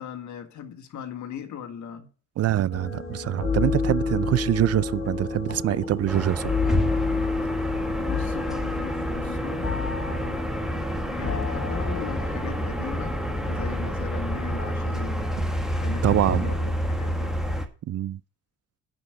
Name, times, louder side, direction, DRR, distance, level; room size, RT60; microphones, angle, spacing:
voice 1, 0.0-2.1 8.0-9.9 11.1-15.4 15.7-17.4, left 8 dB, 70° left, 1.8 m, -38 dB
voice 2, 2.4-6.5 16.0-16.5 17.9-18.2, right 13 dB, 55° right, 0.5 m, -24 dB
sound 1, 2.7-15.3, left 4 dB, 45° left, 2.8 m, -30 dB
sound 2, 6.1-17.7, equal, ahead, 1.6 m, -29 dB
sound 3, 8.9-11.8, left 2 dB, 25° left, 2.5 m, -47 dB
9.7 x 5.2 x 7.6 m
cardioid pair, 90°, 30 cm